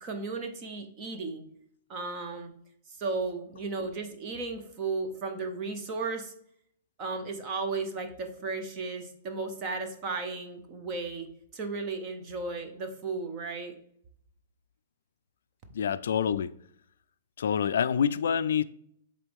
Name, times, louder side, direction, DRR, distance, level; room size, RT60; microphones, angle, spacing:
voice 1, 0.0-1.5 1.9-2.5 3.0-6.3 7.0-11.3 11.5-13.7, right 3 dB, 20° right, 0.7 m, -34 dB
voice 2, 15.7-16.5 17.4-18.6, left 8 dB, 70° left, 0.3 m, -26 dB
7.3 x 3.9 x 3.5 m
hypercardioid pair, 180°, 0 cm